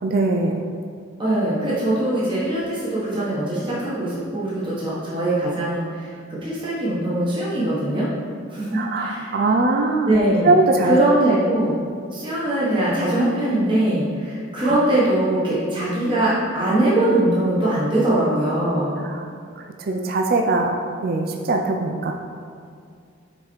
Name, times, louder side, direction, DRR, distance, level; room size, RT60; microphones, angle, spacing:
voice 1, 0.0-0.7 8.7-11.0 11.2-11.4 14.6-14.8 19.0-19.3 19.8-22.1, right 2 dB, 50° right, 2 dB, 0.4 m, -21 dB
voice 2, 1.2-8.1 8.5-9.3 10.0-10.5 10.8-11.7 12.1-19.0, right 1 dB, 25° right, -9 dB, 1.4 m, -22 dB
5.9 x 5.0 x 4.4 m, 2.3 s
head